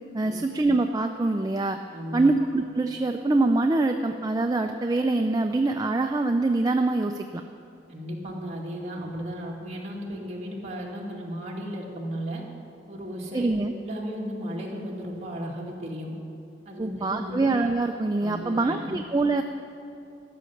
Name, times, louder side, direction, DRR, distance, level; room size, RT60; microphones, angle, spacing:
voice 1, 0.1-1.8 2.1-7.4 13.3-13.7 16.8-19.4, right 2 dB, 20° right, 5 dB, 0.4 m, -24 dB
voice 2, 1.9-2.3 7.9-12.4 12.9-13.5 13.8-16.1 16.7-17.4 18.2-19.0, equal, 35° right, -3 dB, 2.2 m, -35 dB
13.5 x 6.9 x 9.7 m, 2.7 s
head